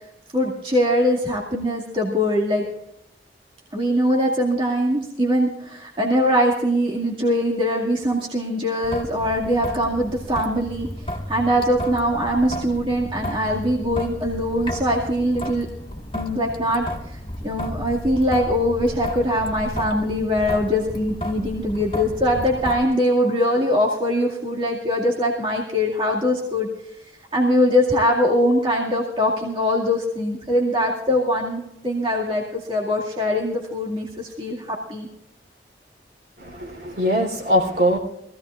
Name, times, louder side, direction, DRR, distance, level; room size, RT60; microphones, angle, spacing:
voice 1, 0.3-2.6 3.7-10.9 11.3-15.7 16.1-17.2 17.4-26.7 27.3-35.1, equal, 30° right, -3 dB, 2.2 m, -22 dB
Traffic noise roadway noise / Drip / Trickle dribble, 8.8-22.8, equal, 30° left, 2.0 m, -33 dB
voice 2, 36.4-38.0, equal, 65° right, 0 dB, 3.8 m, -21 dB
23.0 x 16.0 x 2.5 m, 0.80 s
head